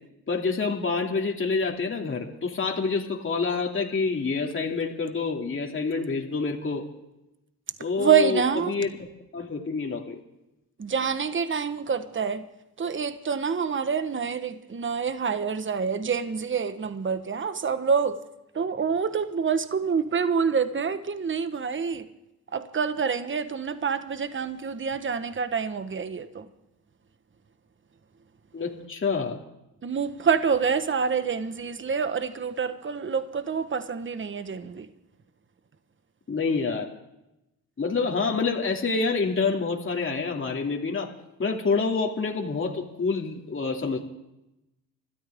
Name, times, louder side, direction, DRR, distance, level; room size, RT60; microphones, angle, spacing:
voice 1, 0.3-6.8 7.8-8.9 9.3-10.1 28.5-29.4 36.3-36.9 37.8-41.1 41.4-44.0, left 4 dB, 35° left, 2.6 m, -27 dB
voice 2, 8.0-8.7 10.8-12.4 12.8-18.2 18.5-22.1 22.5-26.5 29.8-34.9, right 6 dB, 35° right, 1.3 m, -27 dB
26.0 x 13.0 x 3.6 m
cardioid pair, 75°, 36 cm